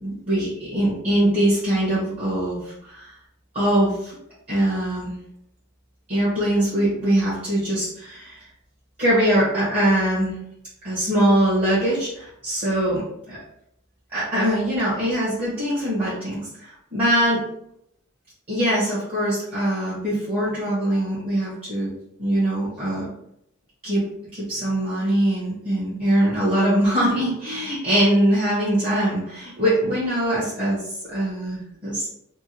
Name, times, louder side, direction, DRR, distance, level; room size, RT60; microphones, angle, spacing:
voice 1, 0.0-3.1 3.5-4.1 4.5-5.2 6.1-8.5 9.0-10.4 10.8-13.4 14.1-17.4 18.5-21.9 22.2-23.0 23.8-24.0 24.3-30.8 31.1-32.1, right 1 dB, 35° right, -10 dB, 1.5 m, -22 dB
3.5 x 2.3 x 2.9 m, 0.73 s
head